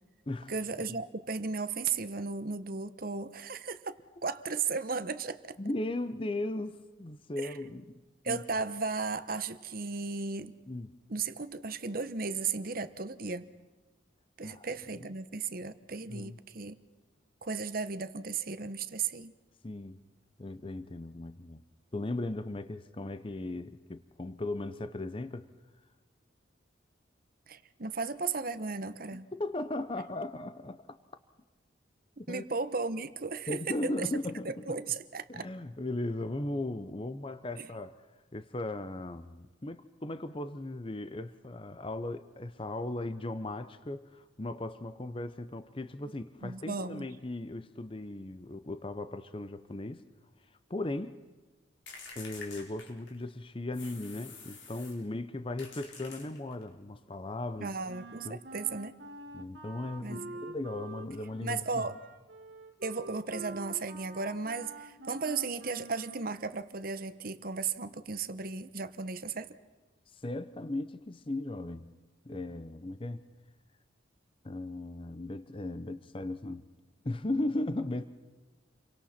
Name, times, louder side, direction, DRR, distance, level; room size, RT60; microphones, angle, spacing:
voice 1, 0.5-5.6 7.4-7.6 8.2-10.5 11.1-13.5 14.4-16.8 17.4-19.3 27.5-29.3 32.3-34.1 34.4-35.5 37.6-37.7 46.4-47.1 57.6-58.9 60.0-60.5 61.4-62.0 62.8-69.6, right 4 dB, 50° right, 1.0 m, -35 dB
voice 2, 5.6-8.0 8.3-8.4 10.7-10.9 14.4-14.7 14.9-15.1 16.1-16.4 19.6-20.0 20.4-21.6 21.9-25.5 29.1-31.0 32.3-32.4 33.5-34.8 35.3-38.0 38.3-50.0 50.7-51.2 52.2-57.7 58.2-58.4 59.3-61.8 70.1-71.9 72.2-73.2 74.4-76.7 77.0-78.1, left 2 dB, 30° left, 0.7 m, -37 dB
sound 1, 51.9-53.3 53.7-55.1 55.6-56.7, left 4 dB, 75° left, 4.1 m, -48 dB
Wind instrument woodwind instrument, 57.9-66.5, right 2 dB, 70° right, 2.0 m, -47 dB
29.0 x 24.0 x 4.3 m
head